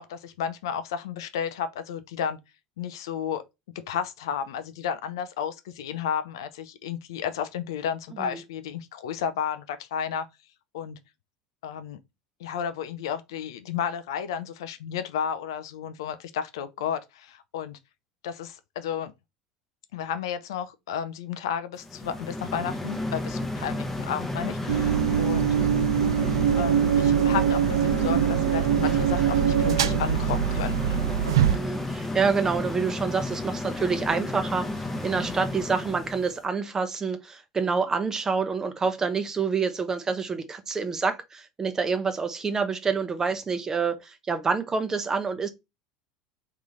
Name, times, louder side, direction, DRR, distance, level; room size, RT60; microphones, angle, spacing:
voice 1, 0.0-2.4 2.8-3.4 3.7-10.3 10.7-11.0 11.6-12.0 12.4-17.8 18.2-19.1 19.9-25.5 26.6-31.0, left 8 dB, 65° left, 0.5 m, -32 dB
sound 1, 21.8-36.4, left 2 dB, 10° left, 0.9 m, -32 dB
sound 2, 24.7-31.6, right 9 dB, 70° right, 0.4 m, -23 dB
voice 2, 31.4-45.5, right 5 dB, 20° right, 0.8 m, -27 dB
3.5 x 3.2 x 4.0 m
figure-of-eight pair, 75°, 3 cm